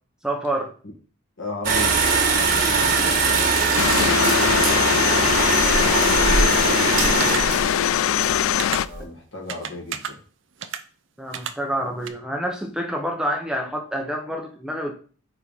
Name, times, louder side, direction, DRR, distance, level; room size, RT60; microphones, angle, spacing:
voice 1, 0.2-0.7 9.0-9.1 11.2-14.9, right 1 dB, 5° right, 2 dB, 0.7 m, -27 dB
voice 2, 1.4-2.0 2.4-5.3 5.9-7.2 8.7-10.2, left 1 dB, 65° left, 0 dB, 1.9 m, -36 dB
sound 1, 1.6-9.0, right 4 dB, 45° right, 1.4 m, -21 dB
sound 2, 3.8-8.9, left 10 dB, 80° left, 0.3 m, -21 dB
sound 3, 7.2-7.4 8.6-8.8 9.5-10.1 10.6-10.8 11.3-11.5 12.1-12.2, right 8 dB, 65° right, 0.6 m, -30 dB
4.9 x 4.7 x 5.5 m, 0.40 s
head